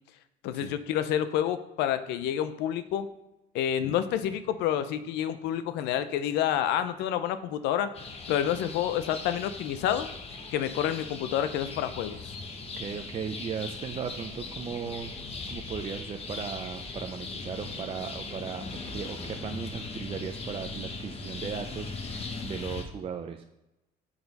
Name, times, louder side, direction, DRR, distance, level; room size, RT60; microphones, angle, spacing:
voice 1, 0.4-3.1 3.5-7.9 8.3-10.1 10.5-12.4, left 10 dB, 90° left, 12 dB, 0.5 m, -28 dB
sound 1, 7.9-22.8, left 3 dB, 35° left, 1.0 m, -39 dB
voice 2, 12.8-15.2 15.5-23.4, right 7 dB, 35° right, 5 dB, 0.5 m, -37 dB
6.9 x 4.1 x 5.2 m, 0.95 s
cardioid pair, 110°, 17 cm